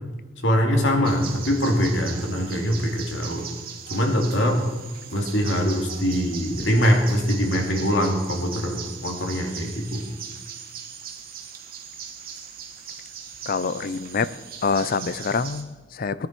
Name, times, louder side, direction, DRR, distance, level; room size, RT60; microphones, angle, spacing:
voice 1, 0.4-3.5 3.9-4.7 5.1-10.1, equal, 75° left, 2 dB, 2.5 m, -23 dB
sound 1, 1.0-15.6, right 7 dB, 50° right, 1.7 m, -39 dB
voice 2, 13.5-14.3 14.6-16.3, left 5 dB, 50° left, 16 dB, 0.5 m, -26 dB
18.5 x 10.5 x 4.6 m, 1.3 s
head